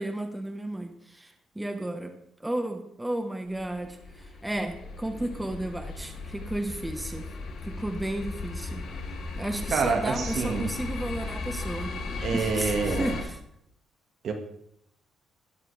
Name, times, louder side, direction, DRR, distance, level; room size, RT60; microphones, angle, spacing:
voice 1, 0.0-7.3 7.6-8.8 9.4-11.9 12.3-13.4, right 1 dB, 10° right, 6 dB, 1.2 m, -33 dB
sound 1, 3.5-13.2, left 3 dB, 70° left, 2.9 m, -36 dB
voice 2, 9.7-10.7 12.2-13.2 14.2-14.3, right 5 dB, 65° right, 4 dB, 1.8 m, -27 dB
13.5 x 10.5 x 3.4 m, 0.74 s
cardioid pair, 90°, 0 cm